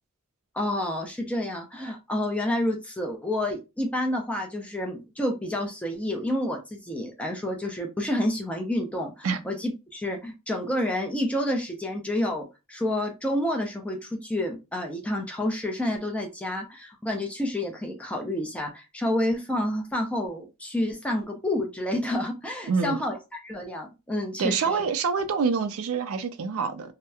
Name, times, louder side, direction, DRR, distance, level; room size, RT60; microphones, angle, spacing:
voice 1, 0.5-24.6, left 1 dB, 5° left, 0.4 m, -29 dB
voice 2, 22.7-23.0 24.4-26.9, right 5 dB, 75° right, 0.4 m, -26 dB
2.8 x 2.0 x 2.3 m
head